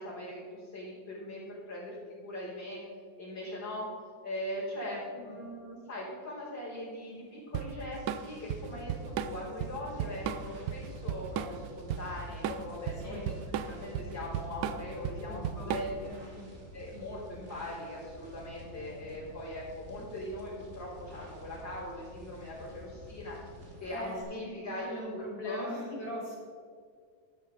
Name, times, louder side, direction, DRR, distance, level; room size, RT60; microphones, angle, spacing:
voice 1, 0.0-1.4 1.7-2.8 3.2-3.9 4.2-13.2 13.7-15.9 16.7-23.4 23.8-25.7, left 1 dB, 70° left, -9 dB, 4.5 m, -40 dB
voice 2, 4.8-5.4 13.0-13.3 15.2-16.5 23.9-26.4, left 1 dB, 90° left, -4 dB, 4.6 m, -42 dB
sound 1, 7.3-24.2, right 1 dB, 45° right, 2.5 m, -51 dB
Drum kit / Drum, 7.5-16.1, right 9 dB, 70° right, 1.2 m, -35 dB
12.0 x 9.4 x 5.0 m, 2.2 s
omnidirectional pair, 2.0 m